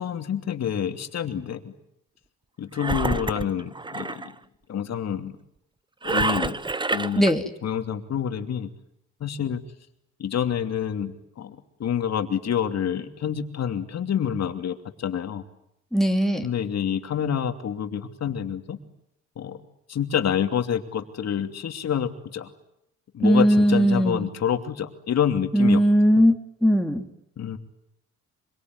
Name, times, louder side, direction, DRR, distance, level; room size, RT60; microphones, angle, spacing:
voice 1, 0.0-1.7 2.6-4.2 4.7-5.3 6.0-6.6 6.9-7.2 7.6-8.7 9.2-9.6 10.2-15.4 16.4-18.8 19.4-19.6 19.9-22.5 23.1-25.8 27.4-27.6, left 8 dB, 60° left, 7 dB, 2.8 m, -27 dB
Engine, 2.8-4.3 6.0-7.3, right 3 dB, 15° right, 1.0 m, -27 dB
voice 2, 15.9-16.5 23.2-24.3 25.5-26.3 26.6-27.1, equal, ahead, 4 dB, 3.1 m, -19 dB
25.0 x 23.5 x 9.6 m, 0.77 s
cardioid pair, 90°, 30 cm